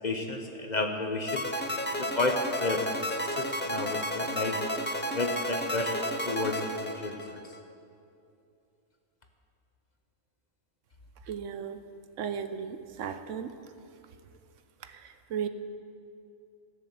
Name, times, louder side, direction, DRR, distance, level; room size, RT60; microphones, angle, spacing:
voice 1, 0.0-1.4 1.9-4.6 5.1-6.0 6.2-7.4, left 2 dB, 40° left, 4 dB, 0.9 m, -32 dB
sound 1, 1.3-7.6, equal, 15° left, 0.4 m, -32 dB
voice 2, 11.2-11.8 12.2-13.6 14.8-15.5, right 7 dB, 75° right, 10 dB, 1.0 m, -36 dB
14.5 x 7.0 x 7.6 m, 2.6 s
omnidirectional pair, 1.3 m